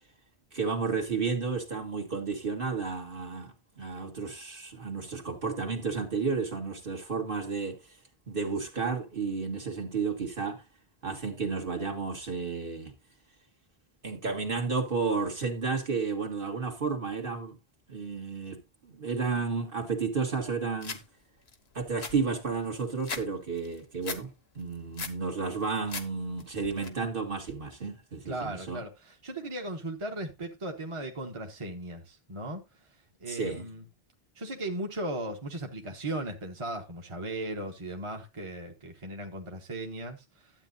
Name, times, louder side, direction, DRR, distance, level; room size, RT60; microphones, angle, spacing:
voice 1, 0.5-8.0 8.3-10.6 11.0-12.9 14.0-17.6 17.9-21.0 21.7-28.8 33.3-33.7, right 4 dB, 60° right, 1.9 m, -32 dB
sound 1, 20.8-21.0 21.5-21.6 21.8-23.3 23.6-24.2 24.6-25.2 25.6-26.1 26.4-26.9, left 5 dB, 85° left, 1.4 m, -38 dB
voice 2, 28.3-32.6 33.2-33.8 34.3-40.5, right 1 dB, 30° right, 1.2 m, -37 dB
12.0 x 8.4 x 2.6 m
omnidirectional pair, 1.1 m